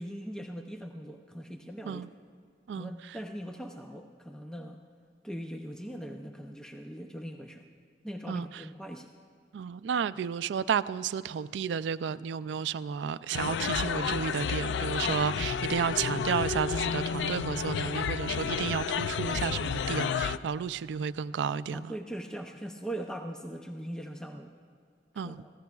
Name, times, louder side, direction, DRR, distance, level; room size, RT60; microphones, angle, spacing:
voice 1, 0.0-2.0 2.7-4.8 5.2-7.7 8.0-9.1 21.7-24.5 25.1-25.5, right 1 dB, 5° left, 3 dB, 0.5 m, -40 dB
voice 2, 9.5-21.9 25.2-25.4, right 7 dB, 80° right, 15 dB, 0.3 m, -32 dB
sound 1, 13.3-20.4, left 6 dB, 75° left, 0.3 m, -31 dB
24.5 x 15.0 x 2.3 m, 2.2 s
head